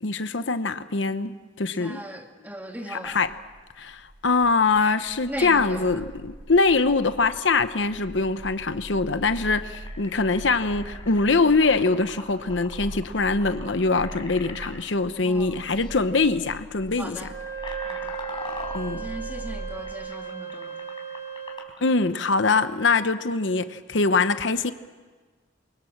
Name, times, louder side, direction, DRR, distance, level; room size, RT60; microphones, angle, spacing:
voice 1, 0.0-2.0 2.9-3.3 3.8-17.2 18.7-19.1 21.8-24.7, left 3 dB, 70° left, 0.9 m, -23 dB
voice 2, 1.8-3.2 5.2-6.0 15.2-15.6 17.0-17.3 17.8-18.2 18.9-20.7, right 1 dB, 10° right, 2.1 m, -38 dB
sound 1, 3.0-19.9, right 1 dB, 70° right, 1.9 m, -42 dB
sound 2, 9.3-14.7 15.7-15.9 16.2-16.5 17.0-21.8, left 3 dB, 25° left, 4.2 m, -41 dB
Wind instrument woodwind instrument, 17.2-21.7, right 7 dB, 50° right, 3.7 m, -36 dB
28.5 x 23.5 x 7.4 m
head